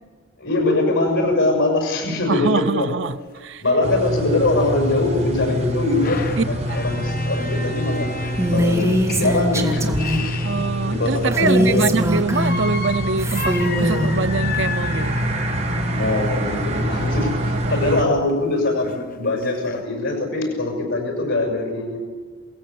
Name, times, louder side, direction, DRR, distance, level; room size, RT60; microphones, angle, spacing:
voice 1, 0.4-2.9 3.6-8.1 8.5-9.9 10.8-11.9 15.8-22.0, left 2 dB, 75° left, 3 dB, 6.4 m, -22 dB
voice 2, 2.3-3.6 6.4-6.8 10.4-15.2 17.5-18.2, right 4 dB, 65° right, 12 dB, 0.7 m, -24 dB
sound 1, 3.1-3.2 3.4-3.5 4.0-4.1 5.4-11.6 12.3-16.0 17.7-17.8 18.3-18.4 18.7-19.8, left 3 dB, 45° left, 1.0 m, -33 dB
sound 2, 3.8-18.0, equal, 35° right, 5.3 m, -25 dB
Female speech woman speaking, 8.4-10.3 11.3-12.7 13.2-14.1, equal, 15° right, 2.9 m, -21 dB
29.0 x 17.5 x 8.6 m, 1.5 s
head